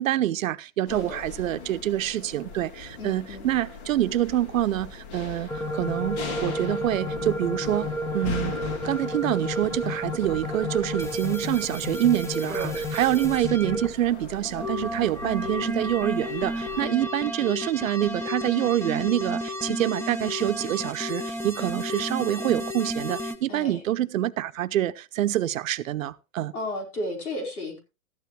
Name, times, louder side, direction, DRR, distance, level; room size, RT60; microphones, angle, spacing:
voice 1, 0.0-8.6 8.8-26.5, right 13 dB, 65° right, 0.9 m, -26 dB
voice 2, 0.9-1.2 3.0-3.5 12.5-13.2 16.8-17.0 23.5-23.8 26.5-27.8, left 1 dB, 90° left, 5.0 m, -34 dB
sound 1, 0.9-16.9, left 4 dB, 50° left, 2.8 m, -40 dB
sound 2, 5.5-13.9 14.4-23.4, left 1 dB, 5° left, 1.0 m, -31 dB
14.0 x 12.0 x 3.2 m
hypercardioid pair, 130°, 43 cm